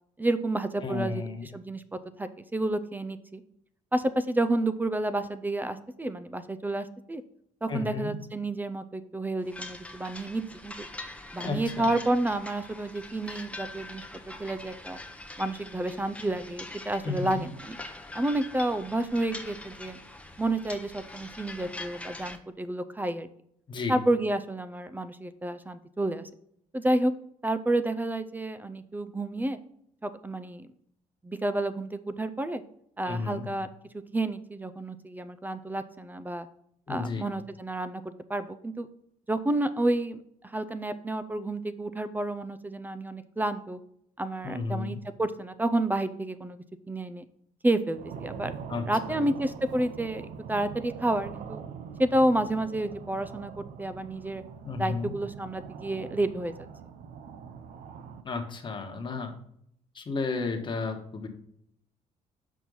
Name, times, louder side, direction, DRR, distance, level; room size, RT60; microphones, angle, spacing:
voice 1, 0.2-1.3 1.5-3.4 3.9-7.2 7.6-10.9 11.3-14.0 14.4-15.0 15.4-17.8 18.1-20.0 20.4-23.3 23.9-26.3 26.7-27.1 27.4-29.6 30.0-30.7 31.2-32.6 33.0-33.7 34.1-36.5 36.9-38.9 39.3-43.8 44.2-47.2 47.6-48.5 48.9-50.2 50.5-51.6 52.0-54.4 54.8-56.5, right 1 dB, 15° right, 12 dB, 0.4 m, -30 dB
voice 2, 0.8-1.5 7.7-8.2 11.4-12.0 17.0-17.4 23.7-24.0 33.0-33.5 36.9-37.3 44.4-45.0 48.7-49.3 54.6-55.1 58.2-59.3 59.9-61.3, left 4 dB, 35° left, 3 dB, 1.2 m, -33 dB
sound 1, 9.4-22.4, left 2 dB, 10° left, 0.8 m, -43 dB
sound 2, 47.9-58.2, right 6 dB, 75° right, 0.6 m, -43 dB
6.3 x 4.3 x 5.3 m, 0.71 s
cardioid pair, 95°, 14 cm